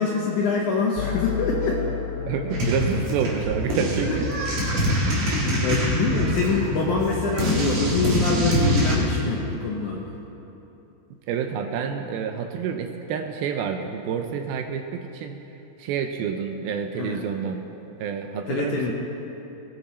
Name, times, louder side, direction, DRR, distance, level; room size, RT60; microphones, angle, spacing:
voice 1, 0.0-1.8 4.1-4.2 5.4-10.2 16.9-17.2 18.5-18.9, left 3 dB, 70° left, -2 dB, 1.9 m, -25 dB
sound 1, 1.0-5.0, left 9 dB, 90° left, 2.8 m, -33 dB
voice 2, 2.3-4.3 5.1-5.2 11.3-15.4 15.8-17.6 18.0-18.9, right 7 dB, 80° right, 6 dB, 2.4 m, -28 dB
sound 2, 2.5-8.9, equal, 50° right, 3.1 m, -24 dB
19.0 x 9.7 x 4.3 m, 3.0 s
omnidirectional pair, 4.6 m